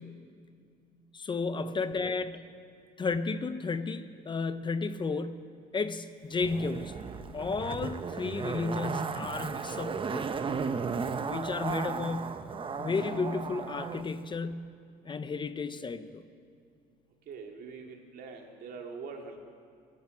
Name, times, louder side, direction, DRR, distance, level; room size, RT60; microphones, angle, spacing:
voice 1, 1.1-2.5 3.0-7.0 7.3-10.3 11.2-12.5 12.8-14.8 15.0-16.2, left 4 dB, 30° left, 12 dB, 0.6 m, -33 dB
Zipper (clothing), 6.4-14.0 14.3-14.4, right 5 dB, 30° right, 0.7 m, -35 dB
voice 2, 17.3-19.4, right 5 dB, 65° right, 2 dB, 2.2 m, -44 dB
19.5 x 11.5 x 6.0 m, 2.3 s
cardioid pair, 110°, 17 cm